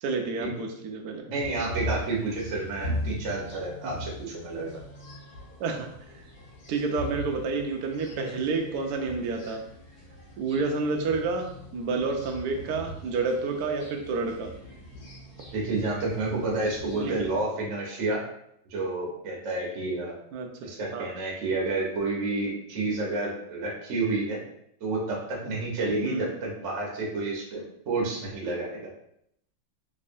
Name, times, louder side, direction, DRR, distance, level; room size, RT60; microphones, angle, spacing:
voice 1, 0.0-1.3 3.8-3.9 5.6-5.9 6.7-9.6 10.4-14.5 17.0-17.3 20.3-21.1 26.0-26.3, right 4 dB, 80° right, 2 dB, 0.9 m, -29 dB
voice 2, 1.3-4.7 15.5-18.2 18.7-20.1 20.6-24.4 24.8-28.9, right 3 dB, 50° right, -3 dB, 1.0 m, -30 dB
sound 1, 1.4-17.4, left 1 dB, 50° left, 1.4 m, -40 dB
3.6 x 3.1 x 2.5 m, 0.73 s
omnidirectional pair, 2.3 m